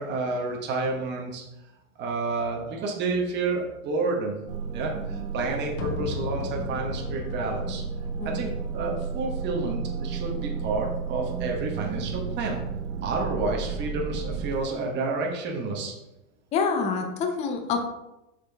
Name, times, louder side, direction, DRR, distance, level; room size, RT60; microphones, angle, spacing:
voice 1, 0.0-1.4 2.0-4.3 4.7-7.8 8.2-12.6 13.0-15.9, right 3 dB, 25° right, 0 dB, 1.1 m, -30 dB
sound 1, 4.5-14.8, right 6 dB, 80° right, 0.9 m, -33 dB
sound 2, 5.8-9.8, left 4 dB, 50° left, 1.2 m, -36 dB
voice 2, 16.5-17.8, left 5 dB, 15° left, 4 dB, 0.5 m, -27 dB
6.6 x 5.9 x 3.4 m, 0.93 s
supercardioid pair, 145°, 42 cm